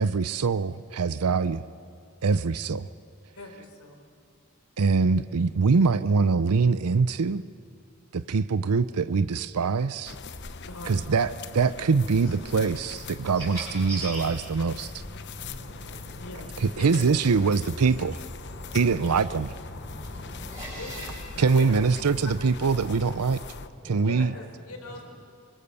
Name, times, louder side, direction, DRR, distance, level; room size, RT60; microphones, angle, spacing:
voice 1, 0.0-1.6 2.2-2.9 4.8-7.4 8.1-10.2 10.9-15.0 16.6-18.2 18.7-19.5 21.4-23.4 23.8-24.3, right 4 dB, 90° right, 14 dB, 0.6 m, -23 dB
voice 2, 3.3-4.1 10.6-11.1 12.2-12.4 16.2-17.0 20.8-21.0 21.5-21.7 24.0-25.0, left 2 dB, 90° left, 2 dB, 4.6 m, -42 dB
sound 1, 10.0-23.7, left 3 dB, 50° left, 0.9 m, -41 dB
voice 3, 13.2-14.8 15.1-16.5 18.5-19.1 19.7-21.1 21.5-21.6 23.8-24.1 24.9-25.0, right 1 dB, 20° right, -8 dB, 5.9 m, -41 dB
26.0 x 24.0 x 7.0 m, 2.3 s
head